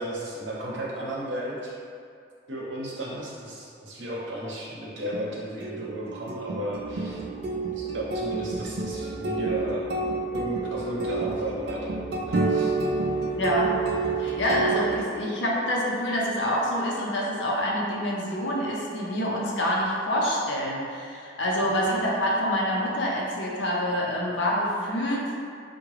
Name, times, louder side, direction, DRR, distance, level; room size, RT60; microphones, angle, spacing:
voice 1, 0.0-1.7 2.5-7.2 7.7-12.7 14.7-14.8 21.6-21.8, right 1 dB, 90° right, -5 dB, 0.7 m, -34 dB
sound 1, 5.1-15.0, right 3 dB, 60° right, 0.3 m, -29 dB
sound 2, 6.7-15.0, right 1 dB, 40° left, 1.0 m, -43 dB
voice 2, 13.4-13.7 14.2-25.3, equal, 85° left, -3 dB, 0.6 m, -26 dB
3.5 x 2.2 x 3.2 m, 2.3 s
head